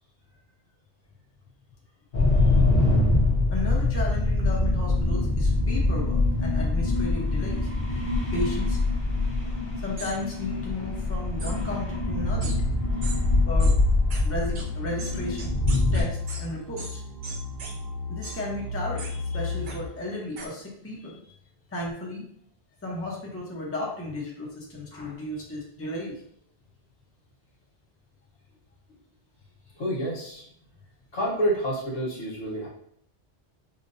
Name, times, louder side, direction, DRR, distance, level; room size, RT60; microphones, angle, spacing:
sound 1, 2.1-16.0, left 2 dB, 50° left, 1.1 m, -24 dB
voice 1, 3.5-7.7 8.3-8.8 9.8-12.6 13.5-13.8 14.2-15.5 15.9-17.0 18.1-21.3 21.7-22.2 22.8-26.2, left 2 dB, 15° left, -3 dB, 0.7 m, -34 dB
sound 2, 10.0-10.1 11.4-11.5 12.4-12.6 13.0-13.2 13.6-13.8 14.1-14.2 14.6-14.7 15.0-16.4 16.8-16.9 17.2-17.7 18.2-18.4 19.0-19.1 19.7-19.8 20.4-20.5, right 3 dB, 50° right, 0.7 m, -38 dB
sound 3, 12.2-19.9, left 3 dB, 85° right, 1.2 m, -34 dB
voice 2, 29.7-30.5 31.1-32.7, equal, 80° left, -4 dB, 1.5 m, -28 dB
5.4 x 2.1 x 2.6 m, 0.66 s
omnidirectional pair, 1.1 m